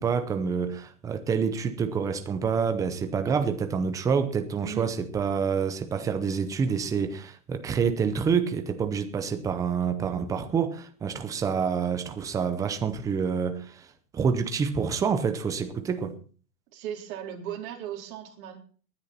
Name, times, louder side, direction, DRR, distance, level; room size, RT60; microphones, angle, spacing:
voice 1, 0.0-16.2, right 6 dB, 5° right, 0.6 m, -27 dB
voice 2, 4.6-4.9 16.7-18.6, right 10 dB, 55° right, 4.2 m, -37 dB
19.0 x 10.0 x 4.3 m
supercardioid pair, 155°, 48 cm